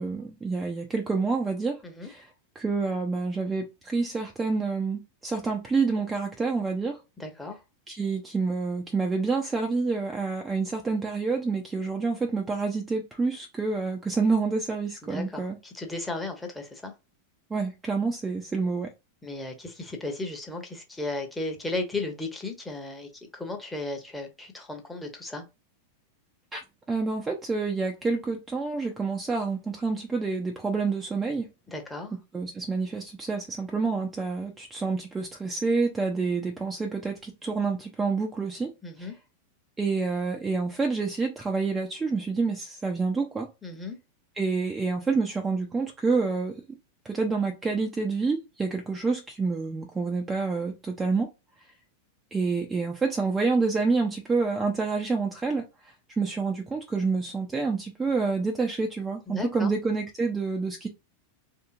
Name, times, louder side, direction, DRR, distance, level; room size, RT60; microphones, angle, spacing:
voice 1, 0.0-2.3 2.6-7.0 7.9-15.6 17.5-18.9 26.5-26.6 26.9-31.5 32.3-38.7 39.0-39.1 39.8-43.5 44.4-46.6 47.0-51.3 52.3-55.6 56.2-60.9, right 4 dB, 15° right, 0.6 m, -28 dB
voice 2, 7.2-7.6 15.0-16.9 19.2-25.4 31.7-32.2 38.8-39.1 43.6-44.0 59.3-59.7, left 2 dB, 5° left, 0.9 m, -35 dB
3.4 x 2.8 x 2.5 m
figure-of-eight pair, 90°, 0 cm